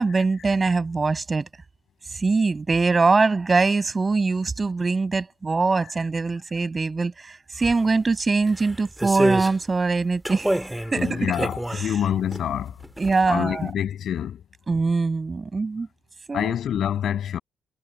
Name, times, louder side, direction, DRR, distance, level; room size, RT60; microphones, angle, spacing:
voice 1, 0.0-1.5 2.1-10.6 10.9-11.9 13.0-13.7 14.7-15.9 16.3-16.5, right 4 dB, 30° right, 5.6 m, -23 dB
sound 1, 7.6-7.8 8.5-9.6 10.2-12.4 12.8-13.3 13.6-13.7, right 1 dB, 5° right, 2.3 m, -27 dB
voice 2, 10.9-12.8 13.3-14.4 16.3-17.4, left 9 dB, 65° left, 7.8 m, -26 dB
cardioid pair, 90°, 0 cm